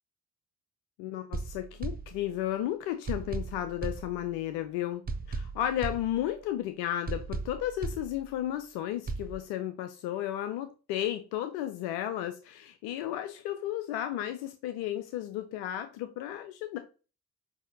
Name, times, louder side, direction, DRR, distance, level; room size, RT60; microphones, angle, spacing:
voice 1, 1.0-16.8, left 12 dB, 75° left, 0.5 m, -33 dB
sound 1, 1.3-2.6 3.1-4.6 5.1-6.6 7.1-8.6 9.1-9.3, right 3 dB, 25° right, 0.6 m, -38 dB
6.3 x 2.7 x 2.6 m
hypercardioid pair, 45°, 38 cm